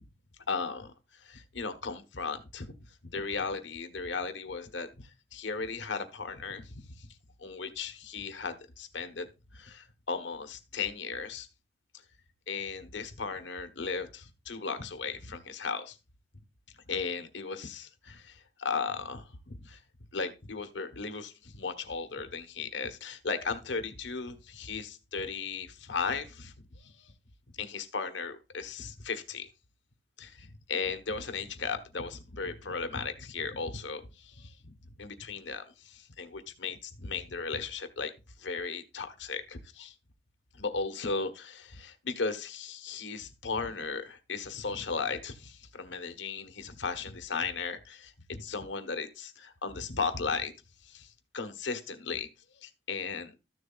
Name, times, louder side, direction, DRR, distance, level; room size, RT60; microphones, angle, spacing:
voice 1, 0.5-0.9 1.2-2.7 3.1-9.3 9.5-11.5 12.5-16.0 16.9-19.8 20.1-26.5 26.8-27.1 27.5-29.5 30.2-38.1 38.4-39.9 40.5-50.5 50.8-52.3 52.6-53.3, left 4 dB, 80° left, 1.3 m, -36 dB
14.0 x 7.0 x 2.4 m
head